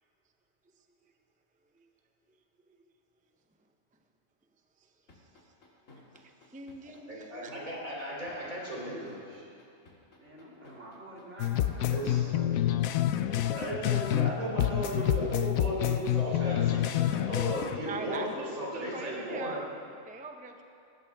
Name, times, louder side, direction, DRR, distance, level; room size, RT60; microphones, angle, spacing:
sound 1, 5.1-11.2, left 3 dB, 70° left, 2.2 m, -55 dB
voice 1, 6.1-7.7 17.8-20.6, right 3 dB, 10° right, 4 dB, 0.5 m, -42 dB
voice 2, 7.1-9.4 11.9-12.3 13.5-19.6, equal, 85° right, -4 dB, 3.8 m, -35 dB
voice 3, 10.2-12.7 13.4-14.0, right 1 dB, 60° right, -5 dB, 3.0 m, -47 dB
sound 2, 11.4-14.3 14.6-17.8, left 12 dB, 90° left, 1.0 m, -28 dB
19.5 x 14.5 x 3.5 m, 2.4 s
omnidirectional pair, 1.4 m